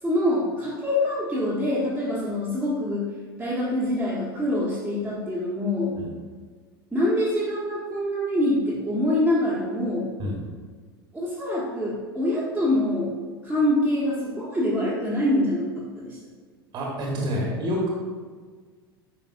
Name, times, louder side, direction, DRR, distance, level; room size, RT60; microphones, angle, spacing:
voice 1, 0.0-3.1 3.4-6.0 6.9-10.1 11.1-13.1 13.4-16.2, left 1 dB, 5° right, -8 dB, 1.5 m, -25 dB
voice 2, 16.7-17.9, equal, 35° right, -2 dB, 1.5 m, -27 dB
9.0 x 5.6 x 2.6 m, 1.5 s
figure-of-eight pair, 80°, 13 cm